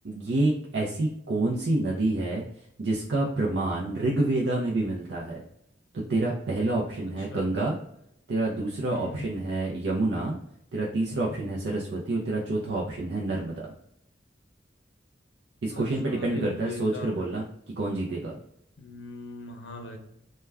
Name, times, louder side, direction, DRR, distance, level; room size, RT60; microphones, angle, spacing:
voice 1, 0.0-2.4 2.8-5.4 5.9-7.8 8.3-10.4 10.7-13.7 15.6-17.5 17.8-18.4, right 2 dB, 75° right, -3 dB, 0.5 m, -28 dB
voice 2, 8.9-9.3 15.7-17.3 18.8-20.0, left 2 dB, 80° left, 3 dB, 0.5 m, -40 dB
2.2 x 2.1 x 3.3 m, 0.75 s
head